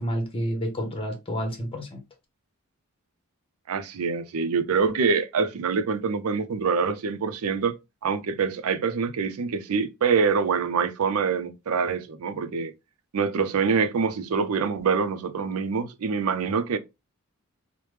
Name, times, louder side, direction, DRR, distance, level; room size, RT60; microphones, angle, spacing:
voice 1, 0.0-2.0, equal, 25° left, 0.9 m, -29 dB
voice 2, 3.7-7.8 8.0-12.7 13.1-16.8, right 5 dB, 75° right, 0.5 m, -25 dB
3.2 x 2.1 x 3.1 m
head